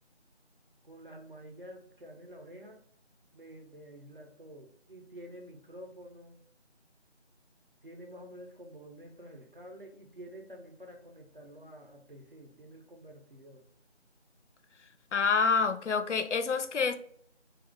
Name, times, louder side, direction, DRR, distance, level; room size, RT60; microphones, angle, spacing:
voice 1, 0.8-2.8 3.3-6.4 7.8-13.7, equal, 50° right, 0.7 m, -49 dB
voice 2, 15.1-16.9, left 5 dB, 85° left, 0.5 m, -27 dB
2.5 x 2.4 x 3.6 m
figure-of-eight pair, 175°, 35 cm